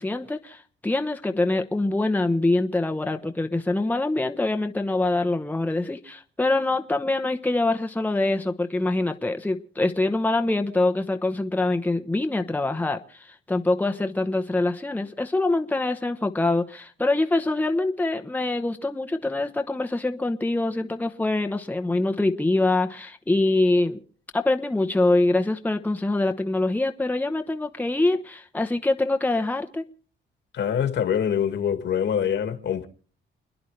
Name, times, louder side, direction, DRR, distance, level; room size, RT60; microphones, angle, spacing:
voice 1, 0.0-24.0 24.3-29.8, left 2 dB, 10° left, 1.0 m, -24 dB
voice 2, 30.5-32.9, left 8 dB, 65° left, 2.1 m, -24 dB
29.5 x 10.0 x 3.3 m
cardioid pair, 90°, 20 cm